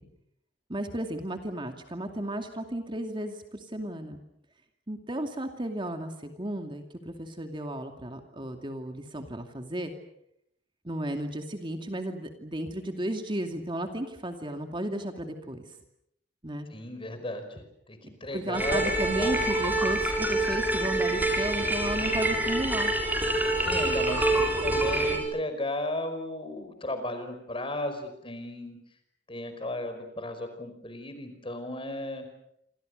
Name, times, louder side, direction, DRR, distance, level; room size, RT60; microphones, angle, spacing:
voice 1, 0.7-4.2 4.9-9.9 10.8-15.6 16.4-16.7 18.3-22.9, right 1 dB, 25° right, 5 dB, 2.5 m, -34 dB
voice 2, 16.7-17.6 17.9-18.9 19.2-19.5 23.6-28.8 29.3-32.2, left 1 dB, 30° left, 9 dB, 5.1 m, -35 dB
sound 1, 18.5-25.2, right 2 dB, 10° right, 7.1 m, -26 dB
28.0 x 27.0 x 6.6 m, 0.73 s
head